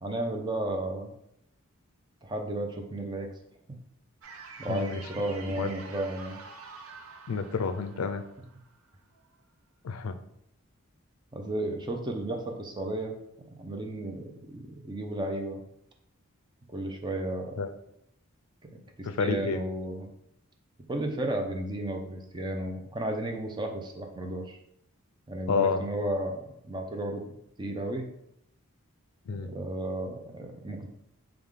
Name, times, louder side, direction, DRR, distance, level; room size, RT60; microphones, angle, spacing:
voice 1, 0.0-1.1 2.2-3.3 3.7-3.8 4.6-6.4 11.3-13.2 13.5-15.6 16.7-17.6 18.6-18.7 19.0-20.1 20.9-24.6 25.3-27.3 27.6-28.1 29.4-30.9, right 1 dB, 20° right, 3 dB, 0.5 m, -33 dB
sound 1, 4.2-9.3, right 4 dB, 85° right, 0.6 m, -47 dB
voice 2, 4.7-5.0 5.5-5.7 7.3-8.2 9.8-10.2 17.6-17.7 19.0-19.6 25.5-25.8 29.3-29.5, left 4 dB, 75° left, 9 dB, 0.4 m, -29 dB
4.8 x 2.4 x 3.6 m, 0.76 s
head